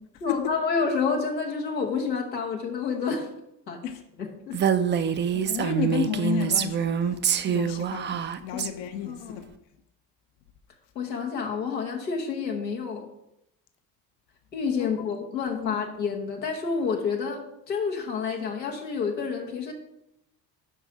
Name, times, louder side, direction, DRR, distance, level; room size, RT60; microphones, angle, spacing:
voice 1, 0.2-3.3 3.7-3.8 4.2-4.6 8.5-9.4 10.9-13.1 14.5-19.7, left 5 dB, 85° left, 1.1 m, -29 dB
Female speech woman speaking, 4.5-8.7, right 8 dB, 25° right, 0.4 m, -25 dB
voice 2, 5.1-9.4 14.8-15.1 15.6-15.8, left 8 dB, 55° left, 0.8 m, -32 dB
7.3 x 5.2 x 4.7 m
figure-of-eight pair, 50°, 49 cm